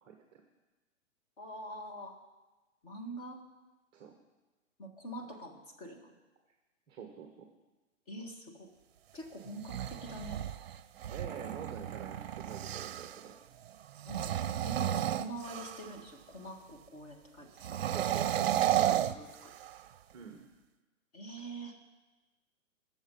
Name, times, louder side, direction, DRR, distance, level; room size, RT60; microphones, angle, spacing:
voice 1, 0.0-0.4 3.9-4.1 6.9-7.5 11.1-13.3 17.8-18.5 20.1-20.5, right 7 dB, 10° right, 3 dB, 0.8 m, -47 dB
voice 2, 1.4-2.2 2.8-3.4 4.8-6.1 8.1-8.7 9.1-10.4 14.1-14.3 14.7-17.8 18.7-19.5 21.1-21.7, right 1 dB, 30° left, 2 dB, 1.8 m, -45 dB
sound 1, 9.5-13.2 14.0-16.0 17.6-19.9, right 12 dB, 50° right, 0.6 m, -33 dB
21.0 x 7.2 x 5.4 m, 1.2 s
hypercardioid pair, 160°, 38 cm